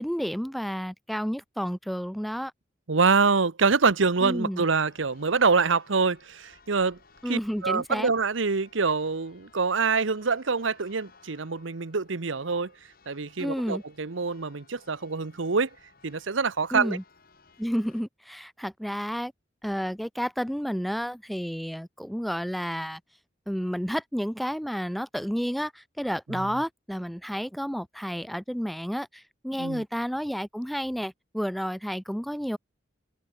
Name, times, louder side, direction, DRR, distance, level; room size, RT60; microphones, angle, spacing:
voice 1, 0.0-2.5 4.2-4.6 7.2-8.1 13.4-13.8 16.7-17.0 17.6-19.3 19.6-23.0 23.5-32.6, equal, ahead, 0.3 m, -31 dB
voice 2, 2.9-7.0 7.3-12.7 13.1-15.7 16.0-17.0 26.3-26.5 29.6-29.8, right 4 dB, 85° right, 1.0 m, -25 dB
Church bell, 4.8-18.0, left 4 dB, 50° left, 4.2 m, -59 dB
head